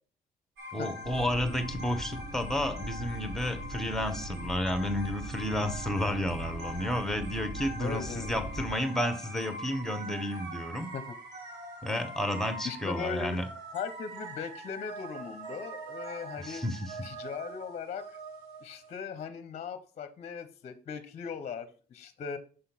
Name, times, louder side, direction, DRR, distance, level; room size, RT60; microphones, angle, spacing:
sound 1, 0.6-18.9, right 1 dB, 80° right, 2.0 m, -43 dB
voice 1, 0.7-10.9 11.8-13.5 16.4-17.0, left 1 dB, ahead, 9 dB, 1.0 m, -31 dB
sound 2, 1.0-8.7, right 1 dB, 50° right, 2.4 m, -41 dB
voice 2, 7.8-8.3 10.9-11.2 12.6-13.4 13.7-16.6 17.0-18.2 18.6-22.4, left 6 dB, 40° left, 12 dB, 0.7 m, -38 dB
6.6 x 3.7 x 5.8 m, 0.42 s
cardioid pair, 110°, 17 cm